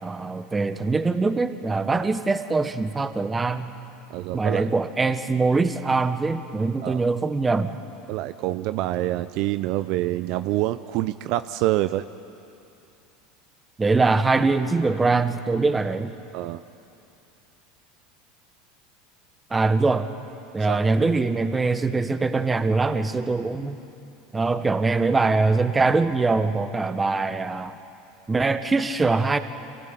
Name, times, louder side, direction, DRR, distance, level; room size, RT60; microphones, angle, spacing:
voice 1, 0.0-3.7 4.3-7.8 13.8-16.1 19.5-20.1 20.5-23.8 24.3-27.7 28.3-29.4, right 3 dB, 20° right, 9 dB, 1.4 m, -23 dB
voice 2, 4.1-4.7 6.8-7.0 8.1-12.0 16.3-16.6 20.7-20.8, right 16 dB, 60° right, 12 dB, 0.6 m, -26 dB
25.5 x 16.0 x 9.1 m, 2.7 s
hypercardioid pair, 90°, 0 cm